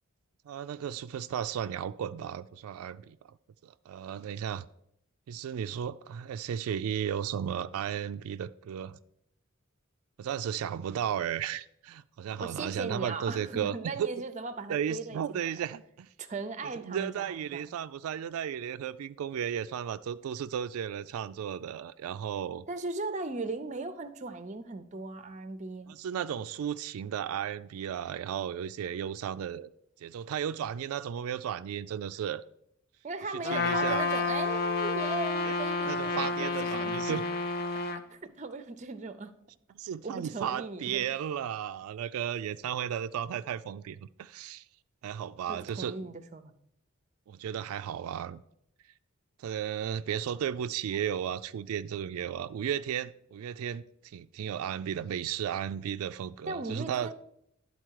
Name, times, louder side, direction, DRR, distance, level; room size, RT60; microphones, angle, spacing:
voice 1, 0.5-3.4 3.6-4.6 5.3-9.0 10.2-14.1 14.7-16.1 16.8-22.6 25.9-29.7 30.0-32.4 33.5-34.0 35.4-35.6 35.8-37.2 39.8-44.6 45.0-46.1 47.3-48.4 49.4-57.1, right 9 dB, 85° right, 0.3 m, -34 dB
voice 2, 12.4-15.5 16.2-17.6 22.7-25.9 33.0-37.2 37.9-39.3 40.0-41.1 45.5-46.5 56.5-57.1, right 3 dB, 35° right, 0.5 m, -38 dB
Trumpet, 33.4-38.0, left 4 dB, 45° left, 0.5 m, -30 dB
11.0 x 4.1 x 4.6 m
head